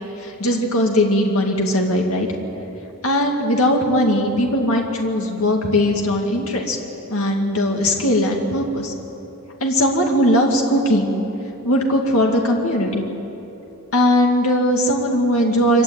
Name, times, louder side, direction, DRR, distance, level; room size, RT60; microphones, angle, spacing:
voice 1, 0.2-2.3 3.0-6.8 7.1-8.9 9.6-11.2 11.6-13.1 13.9-15.8, equal, 70° left, 1 dB, 2.3 m, -19 dB
24.5 x 16.0 x 9.7 m, 3.0 s
head